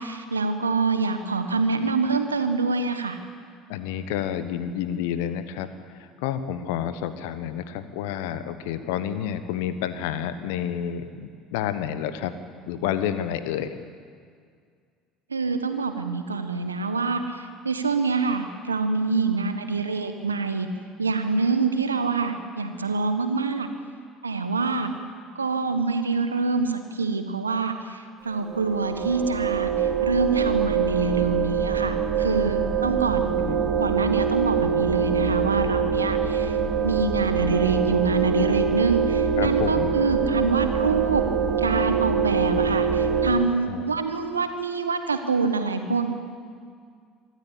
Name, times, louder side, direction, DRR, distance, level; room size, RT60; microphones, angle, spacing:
voice 1, 0.0-3.2 15.3-20.7 21.0-23.7 24.2-24.9 25.3-33.3 33.8-36.6 36.8-41.2 41.6-46.1, right 4 dB, 90° right, 8 dB, 1.4 m, -26 dB
voice 2, 3.7-5.7 6.0-12.3 12.7-13.7 33.1-33.7 39.4-39.9 43.5-43.8, left 10 dB, 70° left, 11 dB, 1.3 m, -30 dB
sound 1, 28.5-43.3, right 6 dB, 35° right, 2.4 m, -24 dB
24.5 x 13.0 x 8.4 m, 2.1 s
hypercardioid pair, 65°, 0 cm